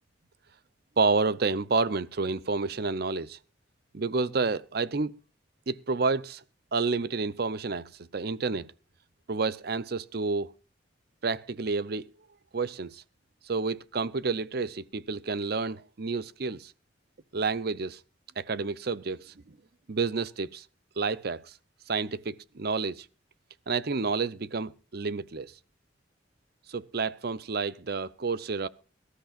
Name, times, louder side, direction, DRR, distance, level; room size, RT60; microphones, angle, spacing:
voice 1, 1.0-3.4 3.9-5.1 5.7-6.4 6.7-8.7 9.3-10.5 11.2-12.1 12.5-13.0 13.4-16.7 17.3-18.0 18.4-19.3 19.9-20.6 21.0-21.5 21.9-23.1 23.7-25.5 26.7-28.7, right 4 dB, 55° right, 0.7 m, -29 dB
24.0 x 13.0 x 2.5 m
head